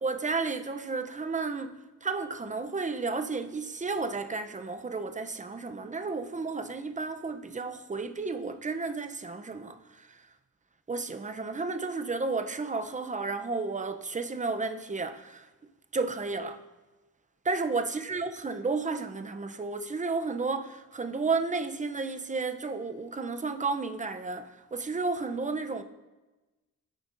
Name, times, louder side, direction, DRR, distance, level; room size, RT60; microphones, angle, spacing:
voice 1, 0.0-10.2 10.9-15.5 15.9-16.6 17.5-25.8, right 4 dB, 20° right, 0.6 m, -32 dB
12.0 x 5.2 x 2.6 m
cardioid pair, 55°, 37 cm